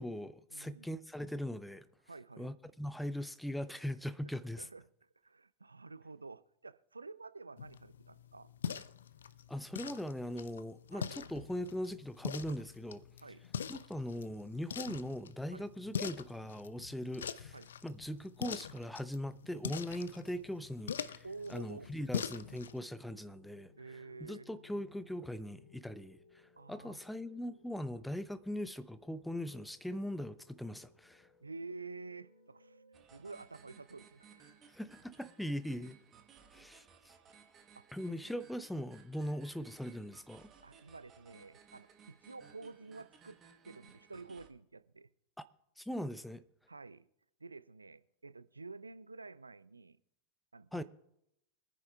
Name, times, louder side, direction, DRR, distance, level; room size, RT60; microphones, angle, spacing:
voice 1, 0.0-1.9 2.4-4.7 9.5-13.0 13.7-17.6 17.8-21.2 21.5-23.7 24.2-31.3 34.7-36.0 36.5-37.1 37.9-40.5 45.8-46.4 50.7-50.8, equal, 5° left, 0.5 m, -40 dB
voice 2, 0.5-0.9 2.1-2.5 4.2-4.3 4.6-4.8 5.2-8.5 10.9-11.1 13.2-13.5 15.5-15.6 17.5-17.7 21.2-21.9 23.8-24.5 26.6-27.0 31.4-32.8 33.1-34.6 37.8-37.9 40.6-43.4 43.7-45.1 46.7-47.1 47.4-50.0 50.5-50.8, right 3 dB, 80° right, 0.4 m, -49 dB
sound 1, 7.6-22.8, left 8 dB, 65° left, 0.4 m, -44 dB
sound 2, 21.4-33.0, left 5 dB, 80° left, 2.2 m, -64 dB
sound 3, 32.9-44.5, right 7 dB, 25° right, 1.2 m, -61 dB
25.0 x 9.7 x 2.3 m
figure-of-eight pair, 90°, 0 cm